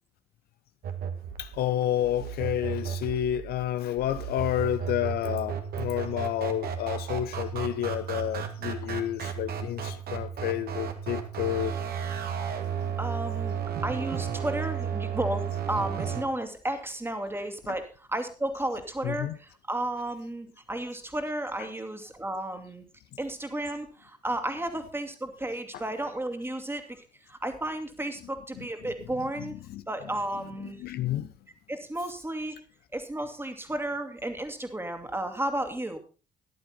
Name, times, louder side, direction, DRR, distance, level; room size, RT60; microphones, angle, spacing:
sound 1, 0.8-16.2, right 7 dB, 55° right, 1.7 m, -33 dB
voice 1, 1.4-11.7 19.0-19.3 29.4-29.8 30.8-31.3, left 12 dB, 55° left, 0.7 m, -30 dB
voice 2, 13.0-13.6 13.8-22.8 23.2-27.0 27.3-29.5 29.9-30.8 31.7-32.6 32.9-36.0, right 1 dB, 10° right, 2.4 m, -33 dB
13.0 x 11.5 x 4.2 m
figure-of-eight pair, 50°, 19 cm